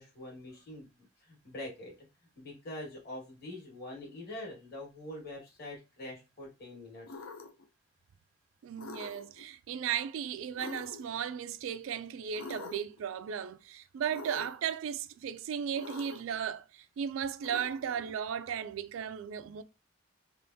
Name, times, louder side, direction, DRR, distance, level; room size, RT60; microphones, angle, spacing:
voice 1, 0.0-1.9 2.4-7.2, left 1 dB, 50° left, 1.7 m, -44 dB
sound 1, 7.1-7.7 8.8-9.4 10.6-11.2 12.3-13.0 14.1-14.7 15.7-16.4 17.4-18.1, left 4 dB, 85° left, 0.6 m, -45 dB
voice 2, 8.6-19.6, right 8 dB, 80° right, 0.3 m, -36 dB
3.5 x 2.5 x 2.7 m
head